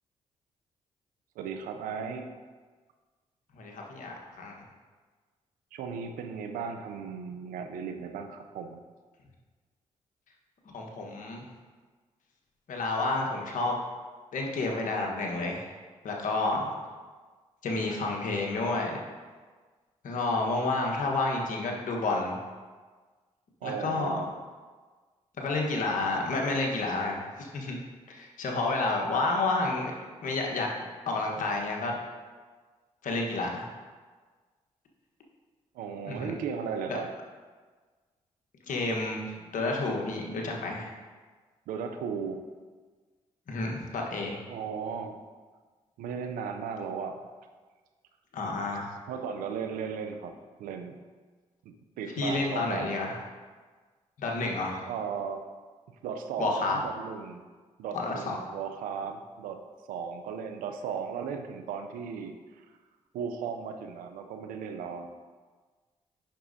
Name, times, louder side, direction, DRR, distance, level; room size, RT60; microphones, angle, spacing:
voice 1, 1.4-2.3 5.7-8.8 23.6-24.3 35.7-37.1 41.7-42.4 44.5-45.2 46.0-47.2 48.7-51.0 51.6-52.9 54.8-55.4 56.0-57.4 57.8-59.6 59.9-62.6 63.1-65.1, right 6 dB, 90° right, 6 dB, 0.6 m, -36 dB
voice 2, 3.6-4.5 10.7-11.4 12.7-13.8 14.3-15.6 16.0-16.7 17.6-19.0 20.0-22.4 23.6-24.2 25.4-27.8 28.1-29.9 30.2-30.7 31.1-31.9 33.0-33.7 36.1-36.3 36.9-37.0 38.7-39.2 39.5-40.9 43.5-44.4 48.3-48.9 52.2-53.2 54.2-54.9 56.4-56.8 57.9-58.3, left 3 dB, 70° left, 0 dB, 1.3 m, -30 dB
8.7 x 6.1 x 2.7 m, 1.4 s
supercardioid pair, 50°, 14 cm